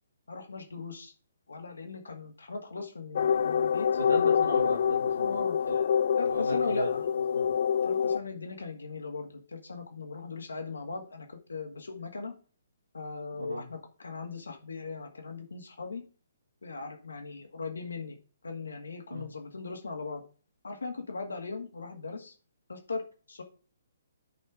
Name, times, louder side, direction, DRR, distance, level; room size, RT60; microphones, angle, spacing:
voice 1, 0.3-1.1 1.5-3.9 5.2-5.6 6.2-7.0 7.8-12.3 12.9-16.0 16.6-18.2 18.4-20.2 20.6-22.3 22.7-23.0 23.3-23.4, left 4 dB, 70° left, 4 dB, 2.0 m, -38 dB
sound 1, 3.2-8.2, left 7 dB, 50° left, 0.4 m, -26 dB
voice 2, 4.0-5.8 6.2-6.9 7.3-7.4 13.4-13.7 19.1-19.3, right 1 dB, 75° right, -3 dB, 2.1 m, -36 dB
10.0 x 4.3 x 5.0 m, 0.38 s
figure-of-eight pair, 130°, 0 cm